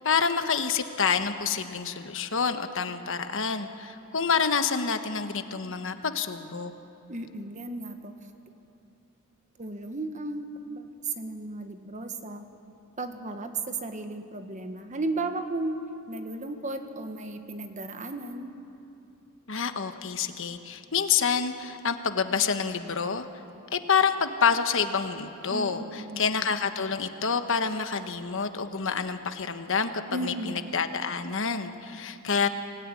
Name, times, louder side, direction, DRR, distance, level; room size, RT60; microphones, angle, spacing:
voice 1, 0.0-6.7 19.5-23.2 23.7-29.9 30.2-32.5, left 6 dB, 65° left, 8 dB, 1.3 m, -27 dB
voice 2, 7.1-8.1 9.6-12.4 13.0-15.8 16.1-18.5 25.5-26.5 30.1-30.7, right 2 dB, 35° right, 7 dB, 1.5 m, -35 dB
24.5 x 18.0 x 9.9 m, 2.8 s
head